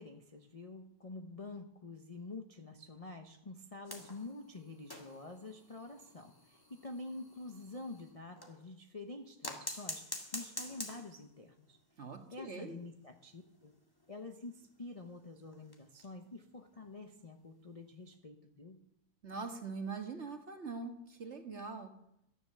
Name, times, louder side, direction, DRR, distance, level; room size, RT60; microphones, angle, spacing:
voice 1, 0.0-11.8 12.3-13.7 14.1-18.8, left 2 dB, 35° left, 5 dB, 0.6 m, -48 dB
sound 1, 3.8-8.6 9.4-11.3 11.6-11.8 12.1-12.2 12.5-12.6 13.2-16.3 16.7-17.0 18.1-18.2, left 1 dB, 15° left, 1.6 m, -47 dB
voice 2, 12.0-12.8 19.2-21.9, right 4 dB, 40° right, 5 dB, 1.7 m, -43 dB
13.5 x 10.5 x 6.7 m, 0.76 s
omnidirectional pair, 2.0 m